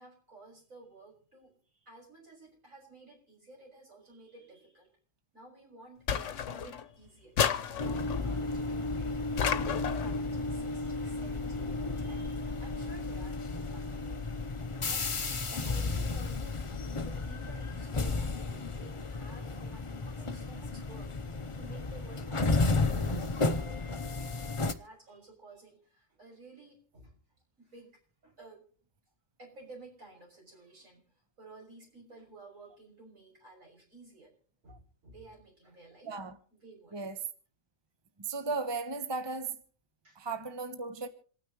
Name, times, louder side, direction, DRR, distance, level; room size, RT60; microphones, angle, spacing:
voice 1, 0.0-4.9 5.3-14.2 14.5-15.1 15.5-16.7 17.0-21.1 21.5-24.1 24.6-27.2 27.6-28.6 29.4-31.0 31.4-34.3 34.6-36.2 36.5-37.0 40.0-40.2, right 2 dB, 80° right, 6.6 m, -54 dB
sound 1, 6.1-6.9 7.4-8.2 9.4-10.2, left 8 dB, 70° left, 1.2 m, -31 dB
sound 2, 7.8-24.7, left 3 dB, 30° left, 0.7 m, -33 dB
voice 2, 38.2-39.6 40.2-41.1, right 3 dB, 20° right, 1.0 m, -36 dB
27.5 x 9.4 x 3.0 m
omnidirectional pair, 1.4 m